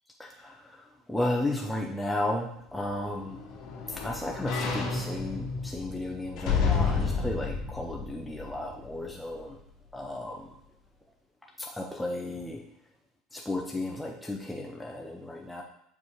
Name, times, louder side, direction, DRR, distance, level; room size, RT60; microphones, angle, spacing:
voice 1, 0.2-3.4 3.9-9.6 9.9-10.5 11.6-12.6 13.3-15.6, left 1 dB, 5° left, 0 dB, 0.7 m, -34 dB
sound 1, 2.7-9.1 9.5-9.6, left 5 dB, 60° left, 2.0 m, -31 dB
6.1 x 5.4 x 3.2 m, 0.73 s
supercardioid pair, 100°, 0 cm